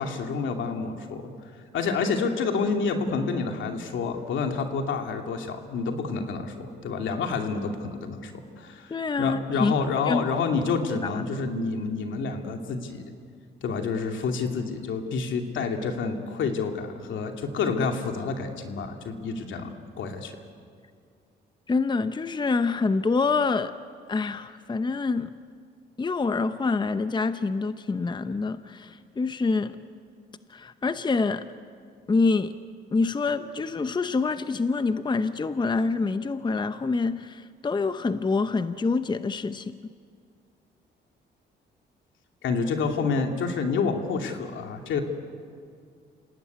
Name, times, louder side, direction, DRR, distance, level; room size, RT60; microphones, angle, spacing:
voice 1, 0.0-1.3 1.7-8.3 8.6-13.0 13.6-20.3 42.4-45.0, left 4 dB, 75° left, 4 dB, 2.7 m, -28 dB
voice 2, 8.9-9.7 10.1-10.2 10.9-11.4 21.7-23.8 24.1-25.3 26.0-29.8 30.5-31.5 32.1-32.6 32.9-39.8, left 4 dB, 20° left, 11 dB, 0.8 m, -26 dB
28.0 x 17.5 x 9.6 m, 2.2 s
cardioid pair, 90°, 20 cm